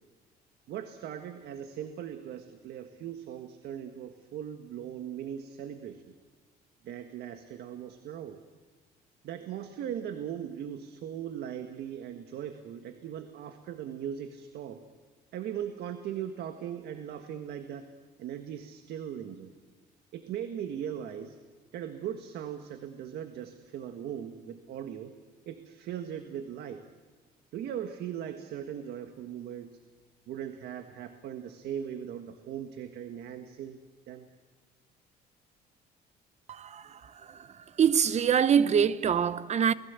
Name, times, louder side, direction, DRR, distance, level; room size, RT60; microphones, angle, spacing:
voice 1, 0.7-6.1 6.8-8.4 9.2-14.8 15.3-17.9 18.2-19.5 20.1-21.4 21.7-25.1 25.5-26.9 27.5-29.8 30.3-33.8 34.1-34.3, right 9 dB, 75° right, 1.6 m, -39 dB
voice 2, 36.5-37.0 37.3-37.5 37.8-39.7, right 8 dB, 40° right, 0.9 m, -24 dB
29.0 x 20.0 x 8.3 m
cardioid pair, 110°, 17 cm